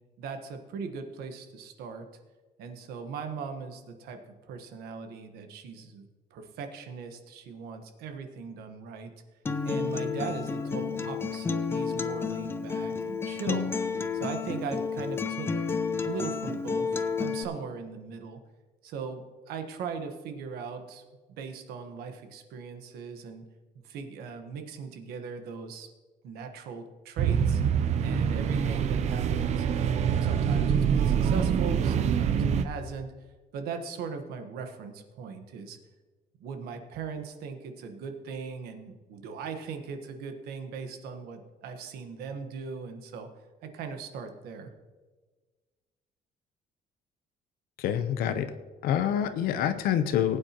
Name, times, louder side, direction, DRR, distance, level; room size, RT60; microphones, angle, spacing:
voice 1, 0.2-2.1 2.6-4.2 4.5-9.1 9.6-13.7 14.1-15.7 16.0-18.4 18.8-21.0 21.4-23.4 23.8-25.9 26.2-27.6 28.0-33.1 33.5-35.8 36.4-43.3 43.6-44.7, right 5 dB, 80° right, 6 dB, 1.3 m, -39 dB
Acoustic guitar, 9.4-17.4, left 5 dB, 15° left, 0.4 m, -31 dB
sound 1, 27.2-32.6, right 7 dB, 45° right, 0.6 m, -25 dB
voice 2, 47.8-48.5 48.8-50.4, left 9 dB, 70° left, 10 dB, 0.8 m, -26 dB
19.5 x 8.9 x 3.0 m, 1.4 s
cardioid pair, 165°, 16 cm